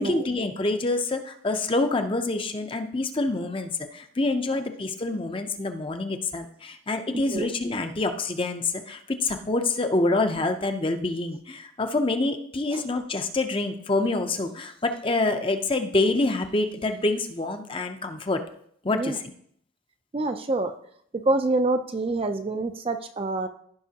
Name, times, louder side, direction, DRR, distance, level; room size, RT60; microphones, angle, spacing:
voice 1, 0.0-18.4 18.8-19.2, left 2 dB, 25° left, 7 dB, 0.6 m, -26 dB
voice 2, 7.1-7.5 12.7-12.8 18.9-19.2 20.1-20.7 21.3-23.5, right 2 dB, 25° right, 7 dB, 0.4 m, -26 dB
15.5 x 5.5 x 2.8 m, 0.66 s
head